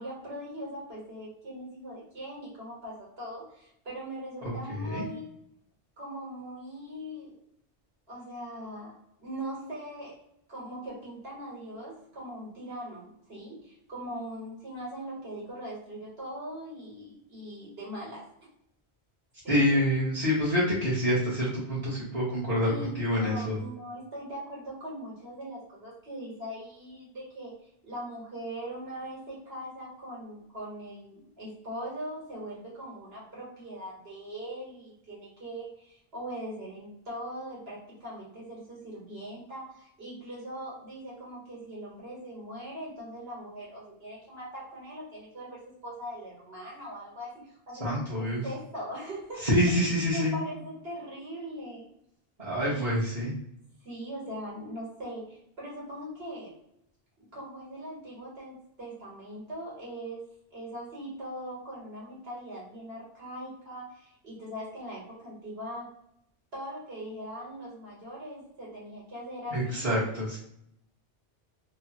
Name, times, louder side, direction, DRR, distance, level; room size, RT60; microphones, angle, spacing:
voice 1, 0.0-5.3 6.0-7.3 8.1-8.9 9.2-10.2 10.5-18.3 19.4-19.7 22.6-27.5 27.8-49.5 50.1-51.8 52.6-53.0 53.8-56.5 57.3-60.2 60.5-65.9 66.5-70.0, equal, 75° right, -6 dB, 1.7 m, -41 dB
voice 2, 4.4-5.0 19.5-23.6 47.8-48.4 49.4-50.3 52.4-53.3 69.5-70.4, equal, 35° right, -9 dB, 1.1 m, -27 dB
3.1 x 2.1 x 2.8 m, 0.74 s
omnidirectional pair, 1.1 m